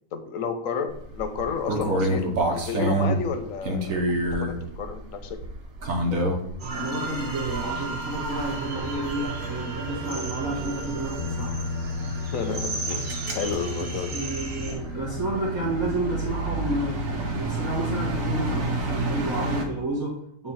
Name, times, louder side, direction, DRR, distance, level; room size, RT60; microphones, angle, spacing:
voice 1, 0.1-4.1 4.4-5.4 12.2-14.2, left 6 dB, 75° left, 7 dB, 1.2 m, -31 dB
Int-Condo-Boxfan, 0.9-6.7 7.2-7.7 8.1-19.7, right 1 dB, 80° right, 1.4 m, -29 dB
sound 1, 6.6-14.7, right 3 dB, 55° right, 1.2 m, -33 dB
voice 2, 6.7-11.6 14.1-17.1 17.3-20.5, right 2 dB, 15° right, -9 dB, 1.7 m, -30 dB
Bass guitar, 11.2-17.4, left 5 dB, 60° left, 0.5 m, -36 dB
8.6 x 3.4 x 4.4 m, 0.67 s
omnidirectional pair, 1.4 m